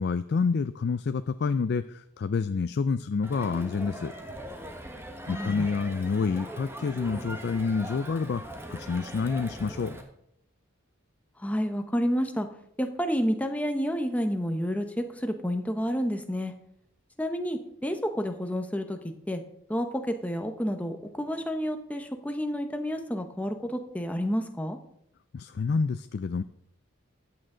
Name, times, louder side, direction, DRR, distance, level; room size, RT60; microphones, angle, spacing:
voice 1, 0.0-4.1 5.3-8.4 8.7-10.0 25.3-26.4, left 5 dB, 50° left, 12 dB, 0.4 m, -28 dB
Crowd, 3.2-10.0, right 1 dB, 10° right, 1.3 m, -41 dB
voice 2, 5.3-5.7 11.4-12.5 12.8-16.5 17.2-19.0 19.3-19.4 19.7-24.8, equal, 5° left, 6 dB, 0.9 m, -30 dB
14.0 x 8.9 x 3.8 m, 0.76 s
head